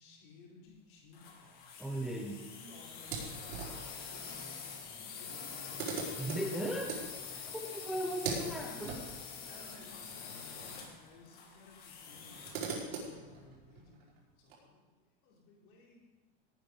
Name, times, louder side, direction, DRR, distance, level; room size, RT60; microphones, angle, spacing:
voice 1, 0.0-1.6 2.5-6.1 7.8-9.1 9.5-16.0, left 3 dB, 55° left, -2 dB, 3.9 m, -58 dB
sound 1, 1.1-12.7, left 6 dB, 30° left, 1.7 m, -46 dB
voice 2, 1.8-2.4 6.2-7.0 7.7-9.0, right 1 dB, ahead, 1 dB, 0.5 m, -37 dB
sound 2, 3.0-4.0 5.0-5.1 5.3-10.9 11.1-11.2 12.1-14.5, right 4 dB, 90° right, 4.7 m, -43 dB
17.0 x 9.2 x 5.3 m, 1.2 s
supercardioid pair, 175°, 30 cm